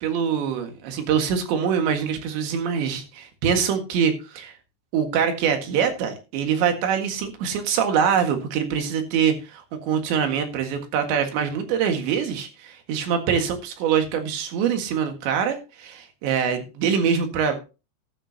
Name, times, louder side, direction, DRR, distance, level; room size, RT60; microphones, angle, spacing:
voice 1, 0.0-4.5 4.9-17.6, right 7 dB, 80° right, 5 dB, 4.1 m, -24 dB
13.5 x 12.5 x 2.8 m, 0.31 s
omnidirectional pair, 5.1 m